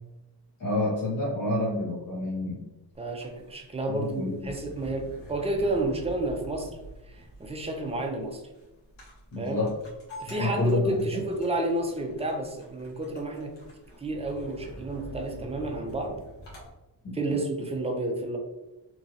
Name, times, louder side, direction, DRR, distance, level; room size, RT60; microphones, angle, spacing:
voice 1, 0.6-2.6 3.9-4.4 9.3-9.8 10.3-11.2, left 2 dB, 45° left, -6 dB, 0.7 m, -28 dB
sound 1, 2.9-16.7, equal, 80° left, 1.3 m, -47 dB
voice 2, 3.0-6.7 7.1-8.4 9.4-9.6 10.2-13.5 14.0-16.2 17.1-18.4, right 2 dB, 15° right, 2 dB, 0.4 m, -30 dB
3.0 x 2.4 x 2.7 m, 1.0 s
wide cardioid pair, 120°, 44 cm